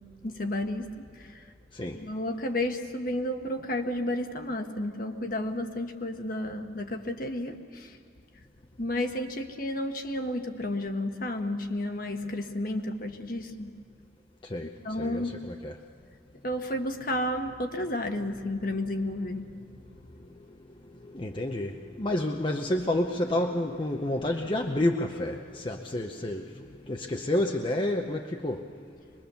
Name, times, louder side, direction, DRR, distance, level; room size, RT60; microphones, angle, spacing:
voice 1, 0.2-1.5 1.8-8.0 8.8-13.7 14.8-15.3 16.4-19.5 20.0-20.3, left 1 dB, 50° left, 5 dB, 1.4 m, -32 dB
voice 2, 14.4-15.8 20.3-20.4 21.0-28.7, left 1 dB, 30° left, 3 dB, 0.8 m, -30 dB
24.0 x 21.5 x 6.9 m, 2.3 s
head